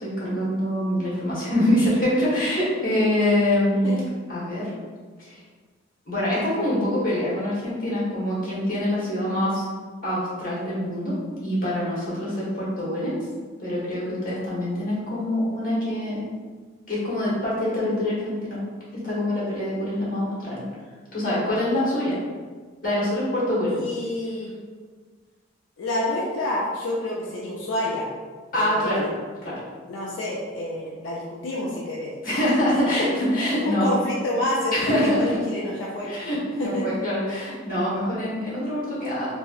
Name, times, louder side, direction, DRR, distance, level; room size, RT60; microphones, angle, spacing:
voice 1, 0.0-4.0 4.3-4.7 5.2-5.4 6.0-9.6 10.0-11.1 11.4-13.2 13.6-16.3 16.9-18.6 19.0-20.6 21.1-22.2 22.8-23.8 28.5-29.1 29.4-29.5 32.2-33.9 34.7-35.2 36.0-39.3, left 1 dB, 45° left, -8 dB, 1.2 m, -25 dB
voice 2, 3.7-4.0 23.7-24.5 25.8-28.1 28.5-29.1 29.9-32.1 32.6-32.7 33.0-33.1 33.6-36.1 36.6-37.0, left 1 dB, 65° left, -4 dB, 0.4 m, -28 dB
3.0 x 2.7 x 2.4 m, 1.5 s
head